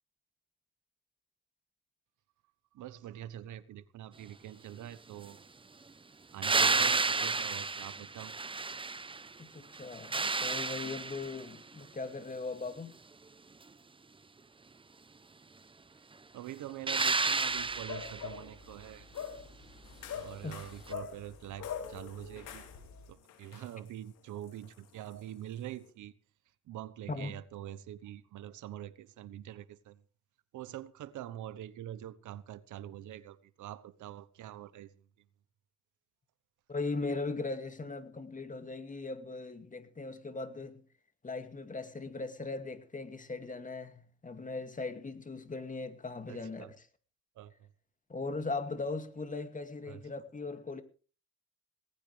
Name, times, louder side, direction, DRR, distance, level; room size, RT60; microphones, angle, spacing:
voice 1, 2.7-5.4 6.3-8.3 16.3-19.1 20.1-22.7 23.1-26.1 26.7-30.0 30.5-34.9 46.3-46.7 47.4-47.5 49.8-50.0, right 12 dB, 80° right, 1.2 m, -45 dB
sound 1, 6.4-9.3 9.7-11.5 16.9-18.3 20.9-21.0, right 4 dB, 15° right, 0.7 m, -31 dB
voice 2, 9.4-13.0 20.4-20.6 27.1-27.4 36.7-40.8 41.2-46.7 48.1-50.8, left 3 dB, 25° left, 2.4 m, -39 dB
sound 2, 17.5-23.1, left 7 dB, 70° left, 6.4 m, -44 dB
sound 3, 19.8-25.9, left 9 dB, 85° left, 3.6 m, -55 dB
18.5 x 16.5 x 3.4 m
cardioid pair, 90°, 30 cm